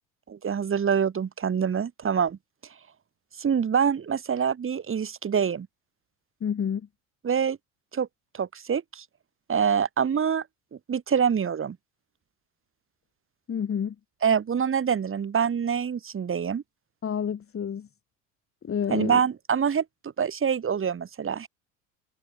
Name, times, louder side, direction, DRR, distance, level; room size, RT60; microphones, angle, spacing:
voice 1, 0.3-2.4 3.4-5.7 7.2-7.6 7.9-8.1 8.3-9.0 9.5-10.4 10.9-11.8 14.2-16.6 18.9-19.8 20.2-21.5, right 7 dB, 30° right, 5.9 m, -25 dB
voice 2, 6.4-6.9 13.5-14.0 17.0-17.9 18.6-19.2, left 8 dB, 35° left, 5.4 m, -29 dB
hypercardioid pair, 75°, 39 cm